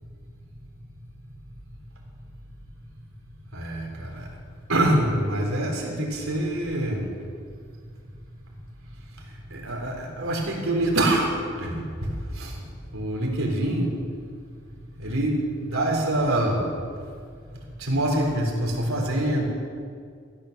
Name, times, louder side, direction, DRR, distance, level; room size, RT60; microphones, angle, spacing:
voice 1, 3.5-4.3 4.7-7.1 9.5-11.3 11.6-12.6 12.9-13.9 15.0-16.8 17.8-19.5, right 1 dB, 85° right, -1 dB, 3.4 m, -25 dB
14.5 x 10.5 x 6.5 m, 2.2 s
head